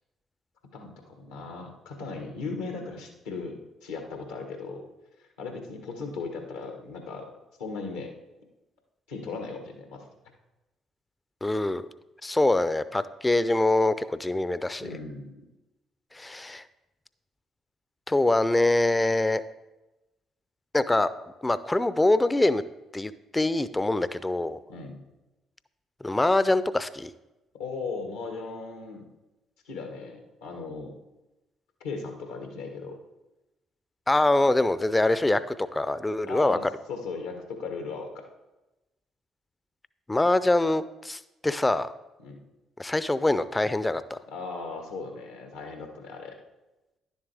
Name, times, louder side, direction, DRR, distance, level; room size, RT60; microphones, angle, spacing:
voice 1, 0.7-4.8 5.4-7.3 7.6-8.1 9.1-10.0 14.8-15.5 24.7-25.0 27.5-29.1 29.6-31.0 31.8-33.0 36.3-36.6 36.9-38.2 42.2-42.4 44.3-46.3, left 4 dB, 80° left, 3 dB, 1.5 m, -37 dB
voice 2, 11.4-11.9 12.2-14.9 16.1-16.6 18.1-19.4 20.7-21.1 21.4-22.6 22.9-24.6 26.0-27.1 34.1-36.6 40.1-41.9 42.8-44.2, left 2 dB, 15° left, 15 dB, 0.5 m, -24 dB
10.5 x 7.2 x 3.5 m, 1.0 s
hypercardioid pair, 45°, 0 cm